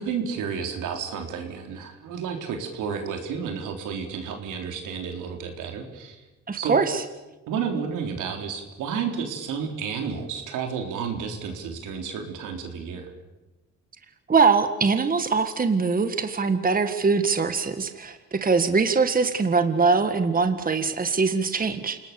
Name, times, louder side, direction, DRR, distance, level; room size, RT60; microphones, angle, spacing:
voice 1, 0.0-6.2 6.6-6.8 7.5-13.1, right 6 dB, 85° right, 4 dB, 4.0 m, -31 dB
voice 2, 6.5-7.0 14.3-22.0, right 4 dB, 30° right, 8 dB, 1.7 m, -22 dB
28.5 x 19.0 x 7.1 m, 1.1 s
cardioid pair, 90°, 30 cm